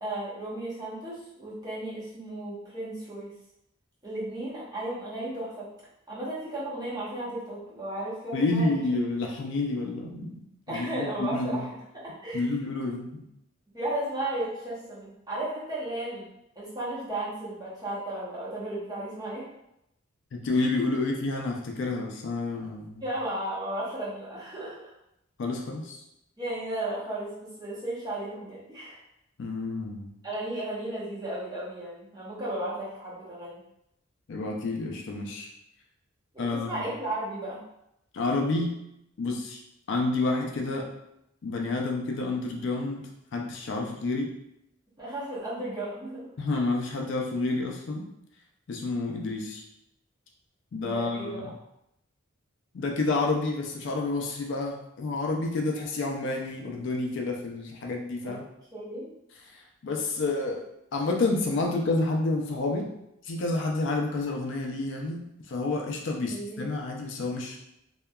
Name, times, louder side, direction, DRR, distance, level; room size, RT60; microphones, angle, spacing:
voice 1, 0.0-3.3 4.0-5.7 6.1-8.7 10.7-11.7 12.0-12.5 13.7-16.3 16.6-19.5 23.0-24.9 26.4-29.0 30.2-33.6 36.3-37.6 45.0-46.3 50.8-51.5 58.2-58.3 58.7-59.1 66.3-66.6, right 1 dB, 20° right, -8 dB, 0.8 m, -34 dB
voice 2, 8.3-10.4 10.7-11.6 12.3-13.2 20.3-23.0 25.4-26.0 29.4-30.1 34.3-35.5 36.4-36.8 38.1-38.7 39.2-39.6 39.9-40.9 41.4-44.3 46.4-48.1 48.7-49.6 50.7-51.5 52.7-58.4 59.4-60.6 60.9-62.9 63.2-67.6, left 2 dB, 60° left, 0 dB, 0.4 m, -29 dB
2.7 x 2.2 x 2.2 m, 0.81 s
head